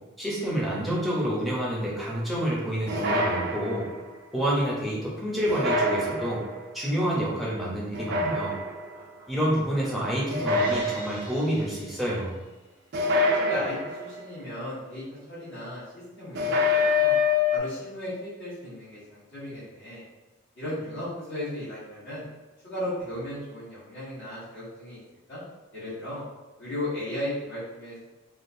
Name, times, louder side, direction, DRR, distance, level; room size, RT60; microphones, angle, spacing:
voice 1, 0.2-3.8 4.3-6.4 6.7-8.6 9.3-12.3, equal, ahead, -6 dB, 0.7 m, -28 dB
sound 1, 2.9-4.1 5.5-6.6 7.9-8.9 10.3-11.5 12.9-14.3 16.4-17.6, left 3 dB, 50° right, 0.4 m, -26 dB
voice 2, 8.9-9.3 9.7-10.1 13.0-17.1 17.5-20.0 20.5-22.3 22.6-25.0 25.3-25.4 25.7-26.2 26.6-28.0, left 1 dB, 55° left, -11 dB, 1.4 m, -36 dB
Crash cymbal, 10.4-12.7, left 1 dB, 15° left, 1.0 m, -44 dB
3.6 x 2.4 x 2.6 m, 1.1 s
head